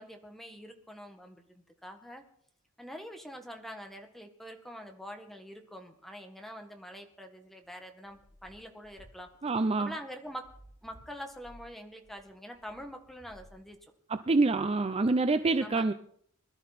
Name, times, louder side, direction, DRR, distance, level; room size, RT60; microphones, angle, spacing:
voice 1, 0.0-2.2 2.8-9.3 9.8-10.5 10.8-13.8 15.6-15.8, equal, ahead, 4 dB, 1.7 m, -45 dB
sound 1, 7.6-14.1, equal, 60° left, 7.7 m, -57 dB
voice 2, 9.4-9.9 14.1-15.9, right 3 dB, 30° right, 10 dB, 0.5 m, -26 dB
21.5 x 12.5 x 4.3 m, 0.63 s
head